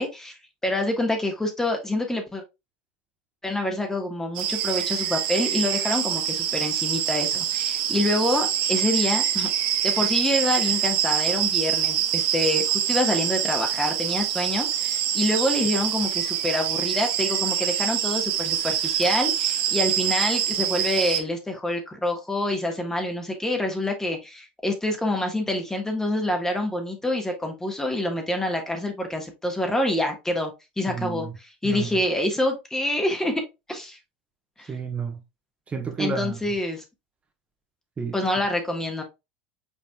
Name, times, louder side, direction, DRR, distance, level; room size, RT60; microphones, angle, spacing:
voice 1, 0.0-2.4 3.4-9.5 9.8-30.5 30.8-31.3 31.6-33.4 33.7-34.0 34.6-34.7 36.0-36.8 38.1-39.0, left 1 dB, 10° left, 1.4 m, -26 dB
sound 1, 4.3-21.2, right 10 dB, 65° right, 1.0 m, -25 dB
voice 2, 30.9-31.3 31.6-32.0 34.7-35.2 35.7-36.5 38.0-38.2, right 5 dB, 25° right, 1.2 m, -31 dB
5.6 x 4.1 x 2.3 m
hypercardioid pair, 95°, 5 cm